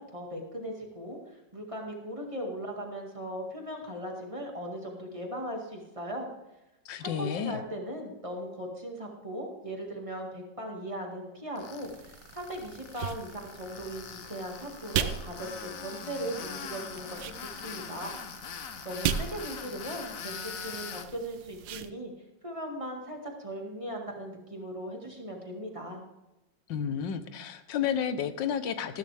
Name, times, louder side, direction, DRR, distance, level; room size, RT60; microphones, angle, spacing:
voice 1, 0.0-6.3 7.0-18.2 18.8-22.1 22.4-26.0, right 1 dB, 20° right, 0 dB, 1.9 m, -38 dB
voice 2, 6.8-7.6 26.7-29.0, left 8 dB, 85° left, 11 dB, 1.5 m, -31 dB
Tools, 11.6-21.1, left 6 dB, 55° left, 1.2 m, -42 dB
sound 1, 11.8-21.9, right 9 dB, 85° right, 1.4 m, -38 dB
14.0 x 12.5 x 3.4 m, 0.97 s
omnidirectional pair, 1.9 m